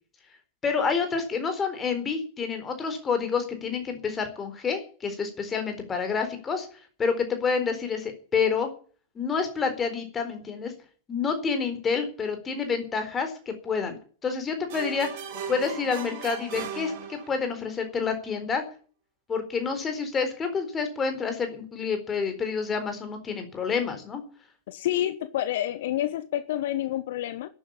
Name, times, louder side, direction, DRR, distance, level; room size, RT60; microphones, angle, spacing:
voice 1, 0.6-6.7 7.0-8.7 9.2-10.7 11.1-14.0 14.2-15.2 15.5-18.6 19.3-24.2, left 5 dB, 20° left, 4.2 m, -28 dB
sound 1, 14.7-17.6, right 6 dB, 50° right, 3.0 m, -38 dB
voice 2, 24.7-27.5, left 13 dB, 55° left, 1.0 m, -28 dB
11.5 x 10.0 x 9.8 m
figure-of-eight pair, 90°, 0 cm